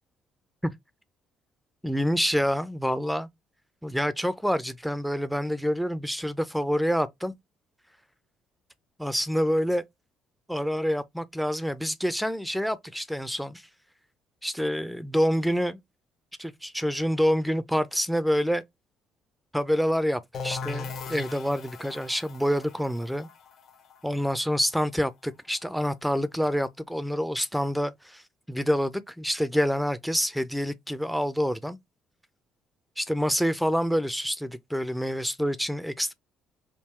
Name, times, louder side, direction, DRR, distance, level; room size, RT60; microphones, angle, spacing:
voice 1, 1.8-3.3 3.8-7.3 9.0-9.8 10.5-13.6 14.4-15.8 16.4-18.6 19.5-23.3 24.0-28.2 28.5-31.8 33.0-36.1, equal, ahead, 0.5 m, -27 dB
sound 1, 20.3-25.9, left 5 dB, 60° left, 1.0 m, -39 dB
3.7 x 2.2 x 4.3 m
supercardioid pair, 65°, 0 cm